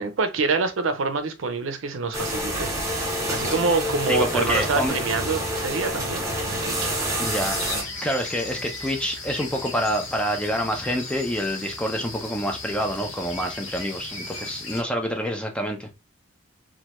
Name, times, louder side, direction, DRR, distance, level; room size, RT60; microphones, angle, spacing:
voice 1, 0.0-2.7 3.3-6.9, right 4 dB, 75° right, 0.5 m, -26 dB
sound 1, 2.1-7.8, equal, 15° right, 0.9 m, -27 dB
voice 2, 4.1-5.0 7.2-15.9, equal, 5° left, 0.4 m, -27 dB
sound 2, 7.2-14.8, left 3 dB, 70° left, 1.1 m, -36 dB
3.1 x 2.2 x 2.9 m
head